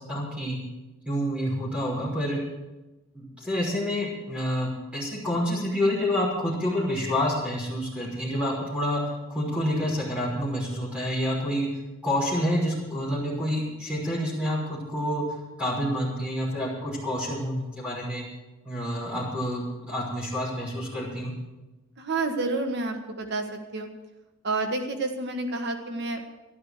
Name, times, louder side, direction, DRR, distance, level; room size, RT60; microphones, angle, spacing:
voice 1, 0.1-0.6 1.1-2.4 3.1-11.7 12.0-15.2 15.6-18.2 18.6-21.3, equal, 5° right, -5 dB, 5.6 m, -28 dB
voice 2, 22.0-23.4 23.7-23.9 24.4-26.2, right 3 dB, 55° right, 5 dB, 1.4 m, -29 dB
12.5 x 12.0 x 6.5 m, 1.1 s
head